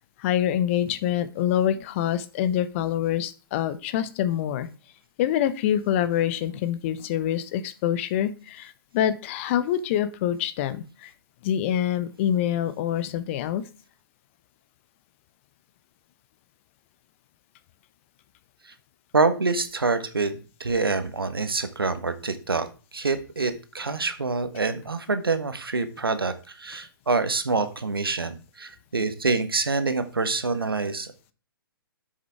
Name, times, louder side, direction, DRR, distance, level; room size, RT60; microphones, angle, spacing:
voice 1, 0.2-4.7 5.2-11.1 11.4-13.6, left 10 dB, 35° left, 13 dB, 0.8 m, -26 dB
voice 2, 19.1-20.3 20.6-22.7 22.9-31.1, right 3 dB, 75° right, 10 dB, 1.5 m, -26 dB
7.8 x 6.5 x 4.8 m, 0.36 s
figure-of-eight pair, 120°, 12 cm